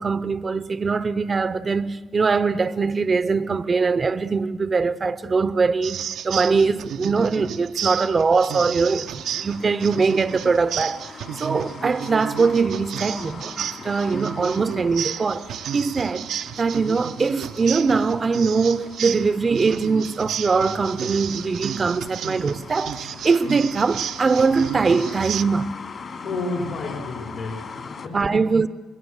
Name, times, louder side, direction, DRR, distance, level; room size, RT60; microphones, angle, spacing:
voice 1, 0.0-11.1 11.4-25.8 28.1-28.7, right 4 dB, 40° right, 0.7 m, -22 dB
sound 1, 5.8-25.4, right 9 dB, 75° right, 0.8 m, -32 dB
sound 2, 8.8-28.1, left 5 dB, 55° left, 3.0 m, -41 dB
voice 2, 26.2-28.4, left 3 dB, 70° left, 4.9 m, -31 dB
28.0 x 21.0 x 8.1 m
supercardioid pair, 70°, 0 cm